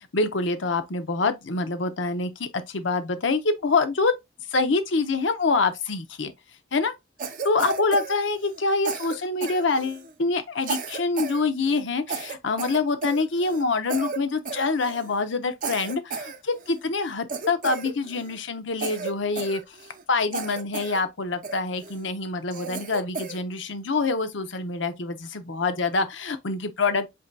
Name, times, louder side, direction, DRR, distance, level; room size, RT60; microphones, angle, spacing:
voice 1, 0.1-4.1 4.5-6.3 6.7-6.9 7.2-19.7 20.1-27.1, left 3 dB, 75° left, 0.8 m, -26 dB
Cough, 7.2-8.6 8.9-10.1 10.6-11.4 11.7-11.8 12.1-13.6 13.9-14.2 14.5-15.1 15.6-16.8 17.3-18.4 18.8-20.0 20.3-21.0 21.4-22.0 22.5-23.4, right 4 dB, 45° right, 0.6 m, -33 dB
7.6 x 2.8 x 2.3 m
head